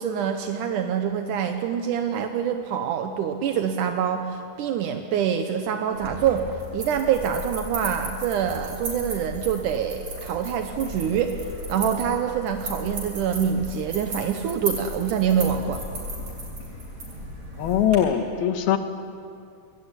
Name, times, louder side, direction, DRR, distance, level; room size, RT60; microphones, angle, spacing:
voice 1, 0.0-11.4 11.7-15.8, right 8 dB, 70° right, 5 dB, 2.0 m, -25 dB
sound 1, 5.9-18.0, right 1 dB, 35° right, 7.8 m, -35 dB
voice 2, 17.6-18.8, left 10 dB, 70° left, 7 dB, 3.1 m, -21 dB
26.5 x 21.5 x 9.8 m, 2.4 s
omnidirectional pair, 5.0 m